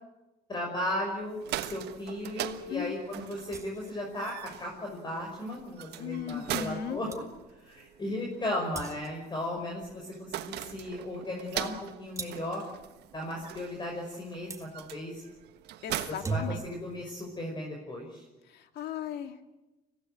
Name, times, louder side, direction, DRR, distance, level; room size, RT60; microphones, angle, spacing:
voice 1, 0.5-4.3 4.6-7.1 7.6-12.6 13.1-15.2 16.3-18.2, left 1 dB, 25° left, 0 dB, 5.6 m, -36 dB
sound 1, 1.2-17.2, right 13 dB, 80° right, 1.4 m, -42 dB
sound 2, 3.5-4.0 6.7-6.8 7.1-7.3 8.7-9.3 12.2-12.6 14.5-14.7 16.0-16.8, right 4 dB, 20° right, 2.6 m, -38 dB
voice 2, 6.0-7.0 15.8-16.6 18.4-19.4, left 9 dB, 75° left, 7 dB, 2.4 m, -37 dB
25.5 x 16.5 x 9.1 m, 1.1 s
cardioid pair, 110°, 17 cm